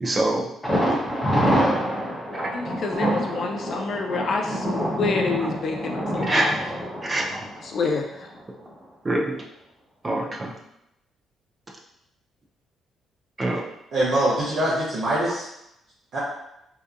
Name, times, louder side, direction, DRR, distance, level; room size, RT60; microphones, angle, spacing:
voice 1, 0.0-0.5 0.9-1.2 2.3-2.5 6.3-6.5 7.0-7.5 9.0-9.4 10.0-10.5 13.4-13.6, right 1 dB, 30° right, 0 dB, 0.5 m, -25 dB
Thunder, 0.6-8.4 8.7-8.8 9.2-9.3, equal, 15° left, 0.9 m, -26 dB
voice 2, 2.5-6.6 7.6-8.3, left 4 dB, 60° left, 1 dB, 0.3 m, -28 dB
voice 3, 13.9-15.5 16.1-16.2, right 1 dB, 65° right, -8 dB, 0.7 m, -23 dB
2.7 x 2.2 x 2.4 m, 0.83 s
cardioid pair, 90°, 0 cm